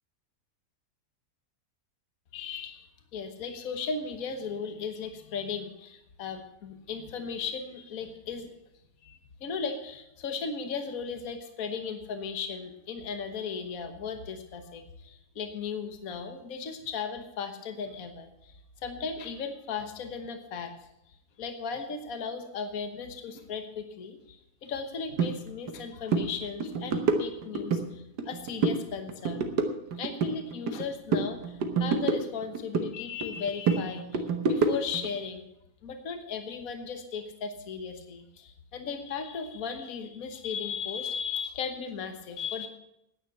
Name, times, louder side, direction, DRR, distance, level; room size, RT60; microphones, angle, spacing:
voice 1, 2.3-2.9 3.1-8.5 9.0-20.7 21.4-29.6 30.0-35.5 35.8-42.7, left 5 dB, 60° left, 7 dB, 1.6 m, -36 dB
sound 1, 25.2-25.3 25.7-25.8 26.1-26.3 26.6-27.8 28.2-28.8 29.1-30.8 31.1-32.9 33.2-35.1, right 4 dB, 85° right, 1.8 m, -27 dB
10.0 x 9.5 x 8.1 m, 0.82 s
omnidirectional pair, 1.7 m